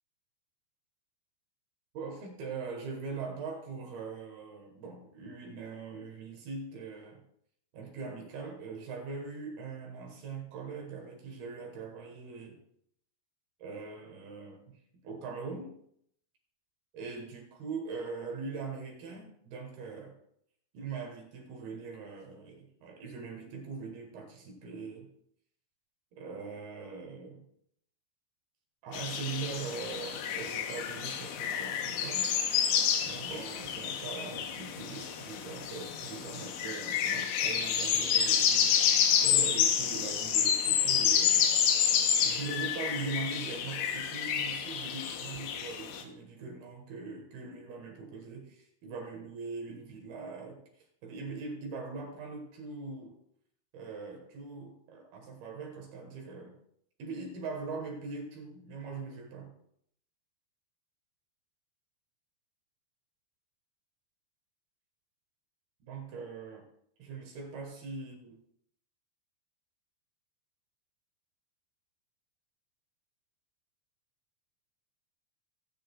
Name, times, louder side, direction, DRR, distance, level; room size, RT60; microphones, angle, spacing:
voice 1, 1.9-7.2 7.7-12.6 13.6-14.8 15.0-15.8 16.9-20.1 20.7-25.1 26.1-27.5 28.8-32.3 33.0-41.5 42.0-53.2 53.7-56.6 57.0-59.5 65.8-66.7 67.0-68.4, right 4 dB, 65° right, 2 dB, 2.9 m, -41 dB
sound 1, 28.9-46.0, left 8 dB, 85° left, 3.5 m, -29 dB
17.5 x 8.9 x 2.3 m, 0.69 s
omnidirectional pair, 5.5 m